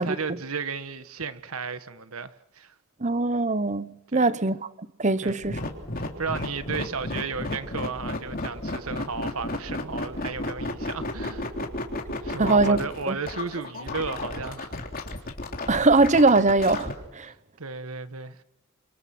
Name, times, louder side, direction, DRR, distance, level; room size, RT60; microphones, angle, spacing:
voice 1, 0.0-2.7 4.1-4.4 5.2-5.5 6.0-11.5 12.2-14.7 17.2-18.4, right 4 dB, 75° right, 1.5 m, -34 dB
voice 2, 3.0-4.7 5.0-5.6 12.4-12.8 13.1-13.2 15.7-17.3, right 3 dB, 35° right, 1.0 m, -21 dB
sound 1, 5.3-16.9, left 2 dB, 40° left, 3.6 m, -32 dB
29.0 x 27.0 x 6.1 m
head